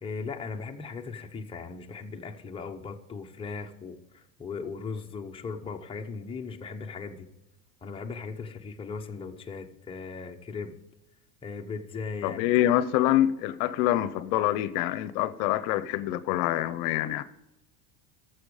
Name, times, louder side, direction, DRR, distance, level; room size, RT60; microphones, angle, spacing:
voice 1, 0.0-7.3 7.8-10.8 11.4-12.4, left 4 dB, 10° left, 0.8 m, -38 dB
voice 2, 12.2-17.2, left 13 dB, 65° left, 0.7 m, -26 dB
13.0 x 7.2 x 4.8 m
supercardioid pair, 130°, 43 cm